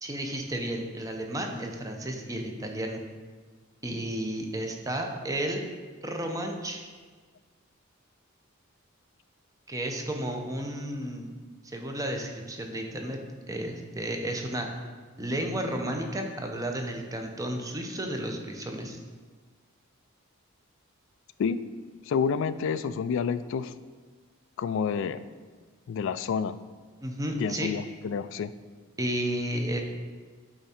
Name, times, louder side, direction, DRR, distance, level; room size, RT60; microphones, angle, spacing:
voice 1, 0.0-3.0 3.8-5.6 6.0-6.8 9.7-11.3 11.7-13.2 13.5-14.7 15.2-19.0 27.0-27.7 29.0-29.8, right 1 dB, 15° right, 3 dB, 0.7 m, -32 dB
voice 2, 22.1-23.7 24.6-25.2 25.9-26.6 27.4-28.5, left 6 dB, 60° left, 13 dB, 0.3 m, -29 dB
8.7 x 3.6 x 4.3 m, 1.5 s
head